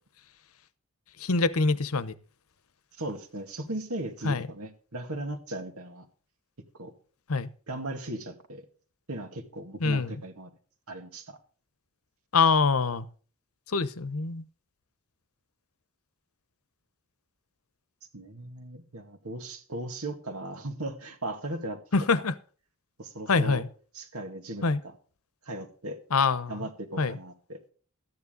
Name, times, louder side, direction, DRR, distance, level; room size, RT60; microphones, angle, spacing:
voice 1, 1.2-2.1 4.2-4.5 7.3-7.5 9.8-10.1 12.3-13.1 13.7-14.4 21.9-22.3 23.3-23.7 24.6-24.8 26.1-26.7 27.0-27.2, left 4 dB, 80° left, 0.9 m, -24 dB
voice 2, 3.0-6.1 6.8-6.9 7.7-8.7 9.1-10.5 10.9-11.4 18.1-21.8 23.0-23.6 23.9-24.9 25.4-26.0 26.5-27.6, right 1 dB, 80° right, 2.2 m, -37 dB
13.5 x 9.7 x 3.9 m
head